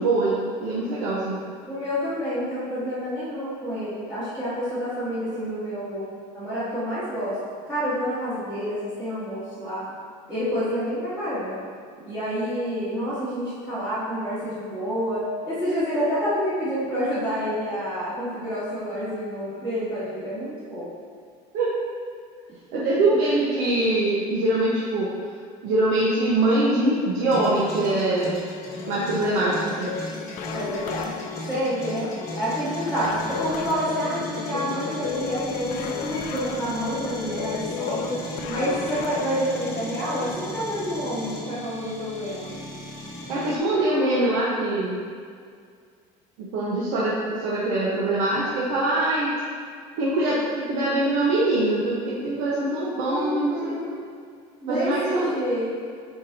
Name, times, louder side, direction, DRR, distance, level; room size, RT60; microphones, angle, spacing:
voice 1, 0.0-1.4 21.5-21.7 22.7-25.1 25.6-28.3 28.9-29.9 43.3-45.0 46.4-49.3 50.0-50.4 50.7-53.8 54.7-55.3, right 2 dB, 70° right, -7 dB, 1.2 m, -23 dB
voice 2, 1.7-7.4 7.7-9.9 10.3-11.6 12.1-20.9 22.7-23.2 30.5-31.2 31.5-38.2 38.5-42.6 53.0-53.9 54.6-55.8, equal, 10° right, -15 dB, 1.8 m, -28 dB
sound 1, 27.3-43.6, equal, 20° left, 1.5 m, -36 dB
sound 2, 28.7-40.3, left 7 dB, 50° left, 0.4 m, -35 dB
9.7 x 4.9 x 2.8 m, 2.1 s
cardioid pair, 170°, 16 cm